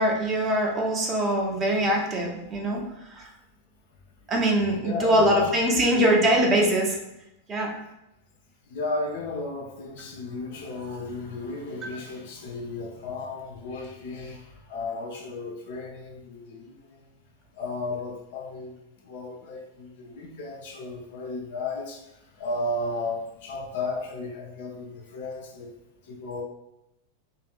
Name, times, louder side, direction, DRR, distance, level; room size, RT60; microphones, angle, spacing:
voice 1, 0.0-2.8 3.1-3.3 4.3-7.0 7.5-7.7, right 1 dB, 25° right, 0 dB, 0.6 m, -23 dB
voice 2, 4.8-6.1 8.7-17.1 17.5-25.7 26.0-26.4, left 3 dB, 55° left, 1 dB, 0.5 m, -34 dB
2.6 x 2.5 x 2.4 m, 0.87 s
figure-of-eight pair, 90°, 0 cm